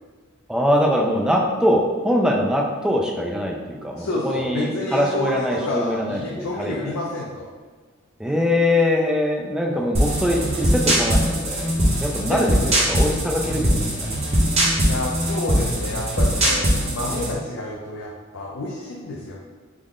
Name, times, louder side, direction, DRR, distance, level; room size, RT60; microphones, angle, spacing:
voice 1, 0.5-6.9 8.2-11.7 12.0-14.1, left 1 dB, 5° right, -1 dB, 0.3 m, -22 dB
voice 2, 4.0-7.5 9.7-9.9 12.2-12.8 14.8-19.4, left 2 dB, 75° left, -3 dB, 0.4 m, -29 dB
sound 1, 9.9-17.3, equal, 30° right, 0.7 m, -21 dB
3.6 x 2.1 x 3.5 m, 1.4 s
head